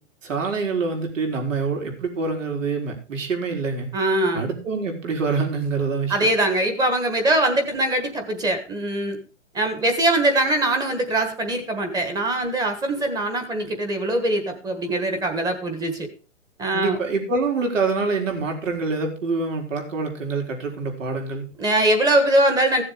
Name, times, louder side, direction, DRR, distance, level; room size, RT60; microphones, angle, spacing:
voice 1, 0.2-3.9 4.3-6.2 16.7-21.5, right 4 dB, 75° right, 3 dB, 4.4 m, -26 dB
voice 2, 3.9-4.4 6.1-9.2 9.5-16.1 16.6-17.0 21.6-22.8, right 1 dB, 10° right, 6 dB, 1.4 m, -22 dB
15.5 x 7.2 x 5.0 m, 0.36 s
hypercardioid pair, 155°, 38 cm